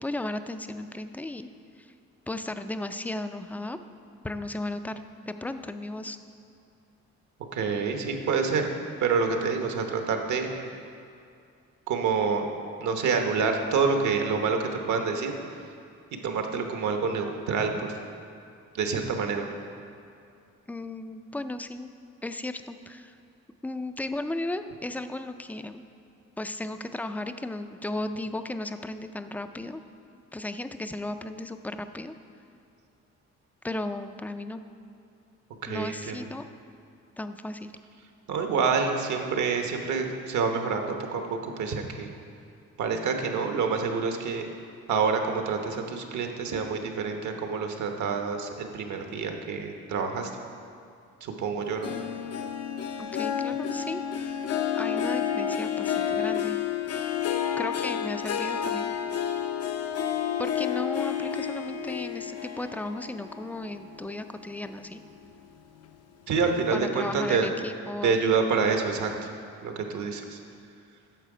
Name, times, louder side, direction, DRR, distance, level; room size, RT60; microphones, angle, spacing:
voice 1, 0.0-1.5 1.8-1.9 2.3-3.8 4.2-6.2 20.7-21.9 22.2-23.1 23.6-25.8 26.4-29.8 30.3-32.1 33.6-34.6 35.7-36.4 37.2-37.7 53.0-54.3 54.7-56.6 57.6-58.9 60.4-65.0 66.7-68.2, left 2 dB, 5° left, 9 dB, 0.3 m, -35 dB
voice 2, 7.5-8.7 9.0-10.5 11.9-12.5 12.8-15.3 16.2-17.9 18.7-19.5 35.6-36.2 38.3-42.1 42.8-44.5 44.9-50.3 51.2-51.9 66.3-67.5 68.0-69.3 69.6-70.4, right 5 dB, 70° right, 4 dB, 1.0 m, -27 dB
Harp, 51.8-64.6 65.0-65.4 65.9-66.0, left 8 dB, 55° left, 0.6 m, -30 dB
9.1 x 6.7 x 4.9 m, 2.4 s
cardioid pair, 90°, 30 cm